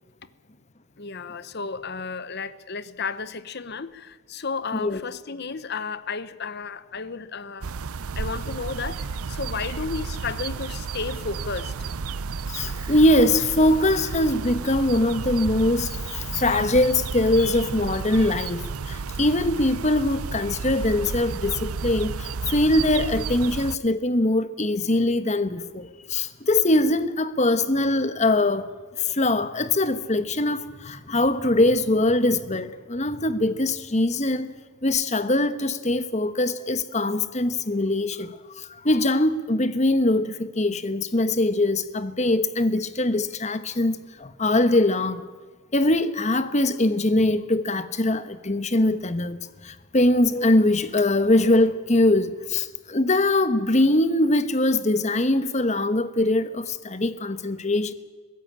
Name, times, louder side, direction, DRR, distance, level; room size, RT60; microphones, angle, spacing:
voice 1, 1.0-11.7, left 5 dB, 50° left, 1.0 m, -33 dB
sound 1, 7.6-23.8, right 5 dB, 90° right, 0.6 m, -32 dB
voice 2, 12.5-28.7 29.0-34.5 34.8-45.2 45.7-49.4 49.6-57.9, left 1 dB, 35° left, 1.1 m, -22 dB
23.0 x 16.0 x 8.8 m
head